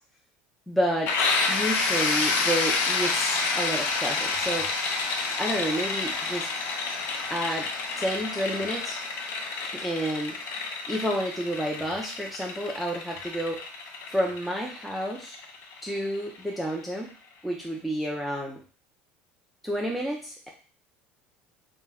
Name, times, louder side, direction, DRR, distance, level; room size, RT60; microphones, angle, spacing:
voice 1, 0.7-1.1 1.5-4.7 5.4-6.5 7.3-7.7 8.0-9.0 9.7-10.4 10.9-13.6 14.1-15.4 15.8-17.1 17.4-18.6 19.6-20.5, equal, ahead, -2 dB, 0.4 m, -30 dB
sound 1, 1.1-16.6, left 4 dB, 55° left, 0.5 m, -29 dB
2.2 x 2.1 x 3.4 m, 0.38 s
supercardioid pair, 110°, 5 cm